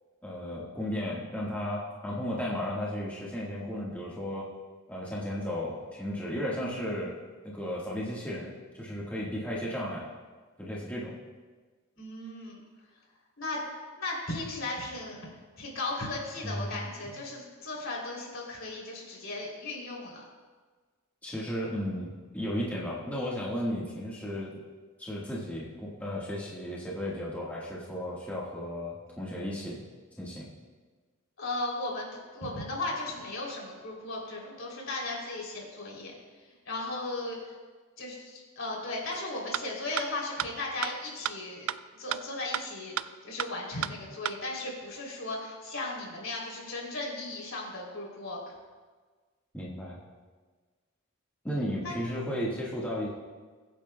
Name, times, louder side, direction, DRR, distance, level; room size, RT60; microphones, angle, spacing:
voice 1, 0.2-4.5 4.9-7.2 7.4-10.1 10.6-11.1 16.4-16.7 17.0-17.1 21.2-24.6 25.0-29.8 30.2-30.4 49.5-50.0 51.4-53.1, equal, 5° left, -6 dB, 1.5 m, -34 dB
voice 2, 12.0-12.6 13.4-13.6 14.0-15.2 15.6-20.2 31.4-36.1 36.6-37.5 38.0-48.5 51.8-52.0, left 2 dB, 65° left, -2 dB, 3.2 m, -36 dB
sound 1, 39.1-39.2 39.5-39.6 40.0-40.1 40.4-40.5 40.8-40.9 41.2-41.3 41.7-41.8 42.1-42.2 42.5-42.6 43.0-43.1 43.4-43.5 43.8-43.9 44.2-44.3, right 11 dB, 75° right, 0.4 m, -30 dB
22.0 x 9.1 x 2.2 m, 1.4 s
head